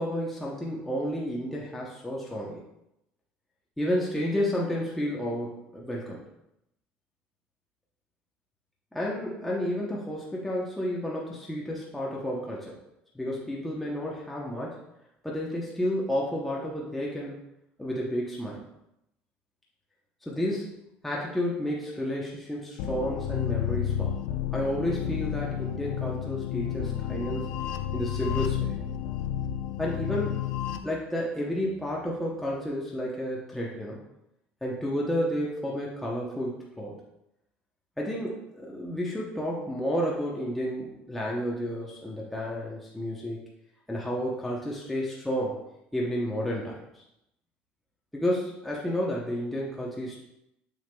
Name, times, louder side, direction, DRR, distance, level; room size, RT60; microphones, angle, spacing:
voice 1, 0.0-2.6 3.8-6.2 8.9-12.8 13.1-14.8 15.2-17.3 17.8-18.6 20.2-20.8 21.0-24.2 24.5-27.5 27.9-28.7 29.8-30.5 30.8-34.1 34.6-37.0 38.0-43.4 43.9-45.6 45.9-46.8 48.1-50.2, equal, 5° left, -4 dB, 0.7 m, -31 dB
sound 1, 22.8-30.8, left 10 dB, 90° left, 0.5 m, -31 dB
6.8 x 6.3 x 2.2 m, 0.85 s
cardioid pair, 165°, 4 cm